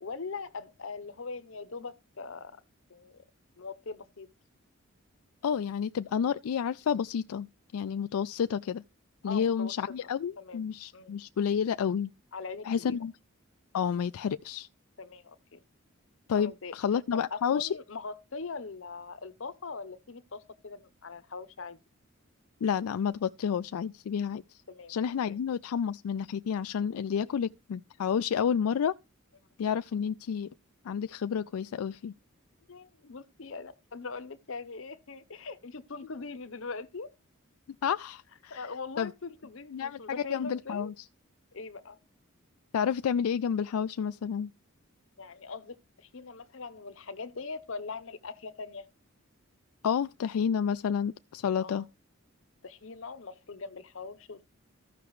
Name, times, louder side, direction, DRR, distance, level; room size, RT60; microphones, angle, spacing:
voice 1, 0.0-2.6 2.9-3.2 3.6-4.3 9.2-9.7 10.4-10.6 10.9-11.1 12.3-13.0 15.0-15.6 16.3-16.8 17.1-21.8 24.7-24.9 25.3-25.4 27.1-27.3 28.3-28.5 32.7-37.1 38.5-40.9 41.5-42.0 45.2-48.9 51.6-51.9 52.6-54.4, left 4 dB, 65° left, 0.8 m, -41 dB
voice 2, 5.4-8.8 9.2-12.1 12.7-13.1 13.7-14.7 16.3-17.7 22.6-24.6 24.9-28.9 29.6-30.5 30.8-32.1 37.8-38.7 39.0-39.1 39.7-40.9 42.7-44.5 49.8-51.8, left 7 dB, 85° left, 0.4 m, -30 dB
14.5 x 5.8 x 3.1 m
head